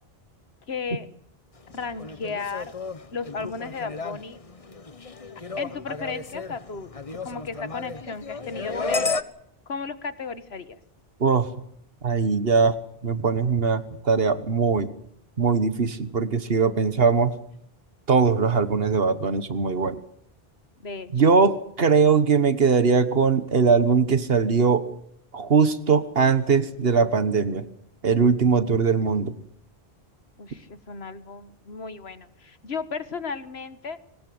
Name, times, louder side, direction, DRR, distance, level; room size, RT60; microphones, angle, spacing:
voice 1, 0.7-1.1 1.7-2.7 3.1-4.4 5.6-6.9 7.2-9.2 9.7-10.8 20.8-21.1 30.4-34.0, left 5 dB, 80° left, 13 dB, 1.7 m, -34 dB
sound 1, 1.7-9.2, left 3 dB, 35° left, 1.1 m, -33 dB
voice 2, 12.0-12.8 13.0-14.9 15.4-17.3 18.1-20.0 21.1-24.8 25.3-27.6 28.0-29.3, right 5 dB, 70° right, 13 dB, 1.5 m, -21 dB
24.0 x 19.5 x 7.8 m, 0.72 s
omnidirectional pair, 1.0 m